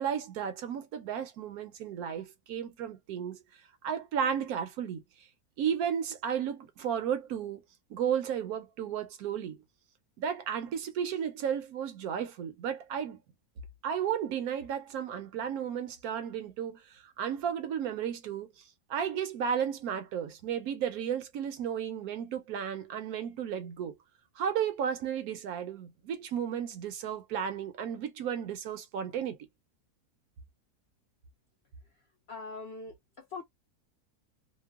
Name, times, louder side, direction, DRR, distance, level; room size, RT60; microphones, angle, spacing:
voice 1, 0.0-3.4 3.8-5.0 5.6-7.6 7.9-9.6 10.2-13.2 13.8-18.6 18.9-23.9 24.4-29.4, right 8 dB, 70° right, 1.0 m, -33 dB
voice 2, 32.3-33.4, left 3 dB, 65° left, 0.6 m, -42 dB
2.9 x 2.1 x 2.2 m
omnidirectional pair, 1.7 m